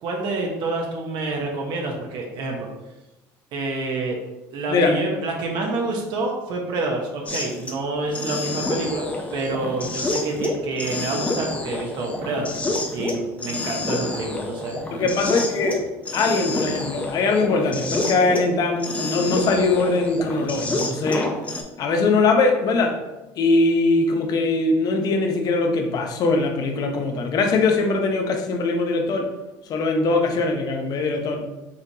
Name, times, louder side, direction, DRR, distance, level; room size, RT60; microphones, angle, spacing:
voice 1, 0.0-2.7 3.5-4.2 4.5-9.1 9.3-12.5 12.9-15.1, right 3 dB, 60° right, 0 dB, 1.0 m, -28 dB
sound 1, 7.3-7.7 8.1-18.5 18.8-21.6, left 2 dB, 15° left, 0.7 m, -28 dB
voice 2, 14.9-15.8 16.1-21.3 21.8-23.0 23.4-29.3 29.7-31.4, left 3 dB, 50° left, 3 dB, 0.8 m, -21 dB
5.5 x 3.2 x 2.8 m, 1.0 s
supercardioid pair, 105°, 8 cm